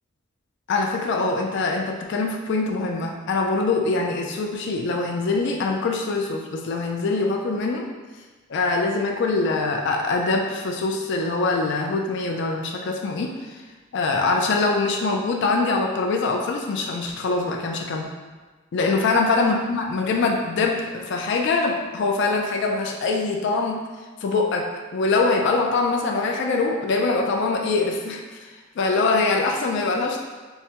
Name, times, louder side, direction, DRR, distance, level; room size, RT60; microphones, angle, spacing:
voice 1, 0.7-7.9 8.5-13.4 13.9-18.1 18.7-23.8 24.2-28.2 28.8-30.2, left 3 dB, 55° left, 2 dB, 0.3 m, -23 dB
4.6 x 2.1 x 2.8 m, 1.3 s
head